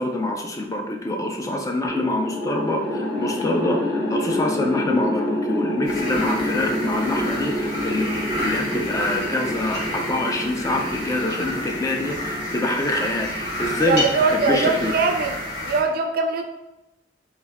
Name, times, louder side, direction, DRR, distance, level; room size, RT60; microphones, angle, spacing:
voice 1, 0.0-14.9, left 1 dB, 20° left, 2 dB, 0.3 m, -25 dB
sound 1, 1.9-14.2, left 1 dB, 65° left, 1.2 m, -28 dB
sound 2, 5.8-15.8, left 1 dB, 90° left, 1.5 m, -30 dB
voice 2, 13.9-16.4, right 4 dB, 55° right, 5 dB, 0.4 m, -22 dB
3.3 x 2.5 x 3.4 m, 0.97 s
head